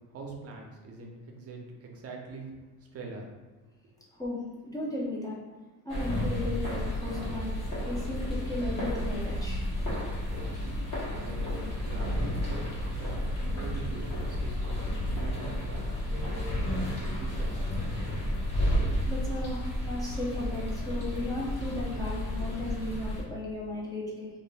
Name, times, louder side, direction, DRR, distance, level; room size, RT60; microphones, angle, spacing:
voice 1, 0.1-3.3 10.0-10.8 11.1-18.0, right 3 dB, 40° right, 0 dB, 0.6 m, -44 dB
voice 2, 4.1-5.4 5.8-7.5 7.9-9.6 19.1-24.3, left 2 dB, 10° left, -6 dB, 0.4 m, -35 dB
sound 1, 5.9-23.2, equal, 55° left, 1.1 m, -32 dB
2.4 x 2.1 x 3.2 m, 1.2 s
cardioid pair, 110°, 38 cm